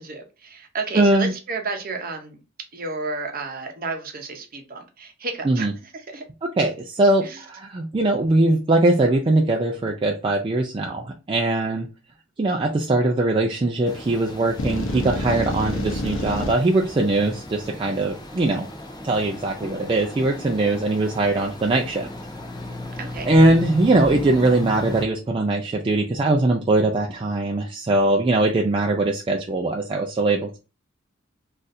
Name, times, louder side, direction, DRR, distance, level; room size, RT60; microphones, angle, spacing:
voice 1, 0.0-2.4 2.7-6.2 7.2-7.4 23.0-23.4, right 3 dB, 45° right, 0.7 m, -32 dB
voice 2, 1.0-1.3 5.4-5.7 6.6-11.9 12.4-18.7 19.0-22.1 23.2-30.6, right 2 dB, 25° right, 0.3 m, -21 dB
sound 1, 13.9-25.0, left 1 dB, 20° left, 0.6 m, -36 dB
sound 2, 14.6-16.5, left 1 dB, 75° left, 0.7 m, -27 dB
4.0 x 2.5 x 2.5 m
head